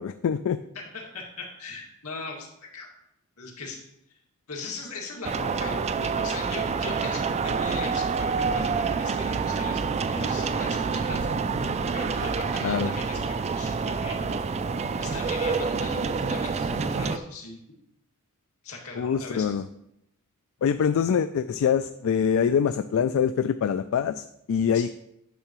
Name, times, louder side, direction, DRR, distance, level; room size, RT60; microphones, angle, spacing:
voice 1, 0.0-0.6 12.6-12.9 19.0-19.7 20.6-24.9, left 7 dB, 65° left, 11 dB, 0.3 m, -24 dB
voice 2, 0.7-2.9 3.4-3.8 4.1-4.2 4.5-9.8 10.1-11.3 11.9-13.2 13.6-14.4 15.0-17.6 18.6-19.6 24.7-24.9, left 3 dB, 85° left, -1 dB, 2.0 m, -39 dB
sound 1, 5.2-17.2, right 5 dB, 30° right, 0.3 m, -27 dB
10.0 x 6.5 x 3.0 m, 0.79 s
head